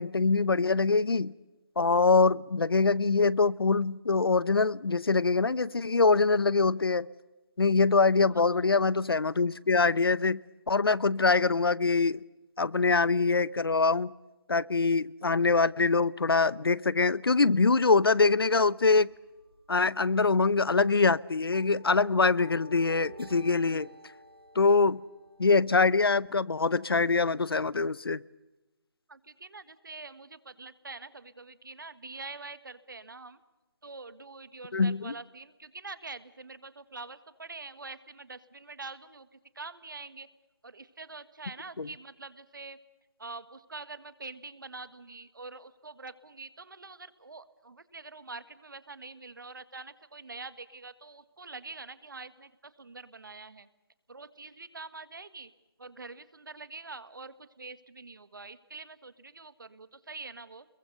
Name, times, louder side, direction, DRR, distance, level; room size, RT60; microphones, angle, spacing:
voice 1, 0.0-1.3 1.8-7.1 7.6-10.4 10.7-12.2 12.6-14.1 14.5-19.1 19.7-23.9 24.5-25.0 25.4-28.2 34.7-35.1 41.8-41.9, left 4 dB, 75° left, 21 dB, 0.8 m, -24 dB
voice 2, 8.3-8.7 11.2-11.4 29.1-33.4 33.8-40.3 40.6-42.8 43.2-53.7 54.1-55.5 55.8-60.7, right 3 dB, 55° right, 14 dB, 1.6 m, -45 dB
sound 1, 17.7-18.6 18.9-19.2 19.5-19.8 20.1-20.2 20.8-20.9 21.5-25.6, equal, 75° right, 4.7 m, -50 dB
26.0 x 22.5 x 6.7 m, 1.1 s
figure-of-eight pair, 175°, 13 cm